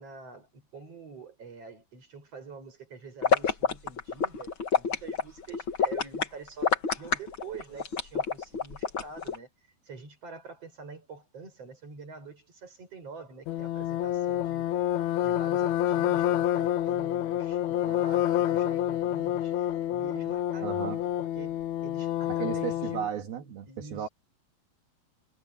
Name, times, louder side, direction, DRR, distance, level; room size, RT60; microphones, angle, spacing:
voice 1, 0.0-9.5 9.9-14.6 15.2-23.0 23.7-24.1, right 4 dB, 40° right, 7.3 m, -46 dB
sound 1, 3.2-9.4, left 5 dB, 40° left, 2.3 m, -27 dB
sound 2, 13.5-23.1, left 12 dB, 85° left, 1.6 m, -28 dB
voice 2, 20.6-21.0 22.3-24.1, right 9 dB, 75° right, 3.8 m, -34 dB
omnidirectional pair, 4.3 m